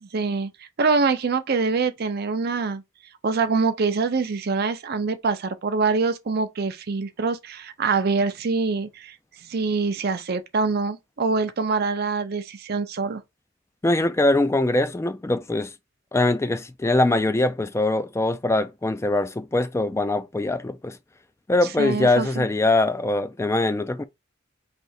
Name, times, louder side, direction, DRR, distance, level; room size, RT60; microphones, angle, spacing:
voice 1, 0.0-2.8 3.2-9.2 9.4-13.2 21.8-22.5, right 4 dB, 50° right, 0.5 m, -25 dB
voice 2, 13.8-15.7 16.1-21.0 21.5-24.0, left 2 dB, 15° left, 0.3 m, -22 dB
3.3 x 2.8 x 4.1 m
head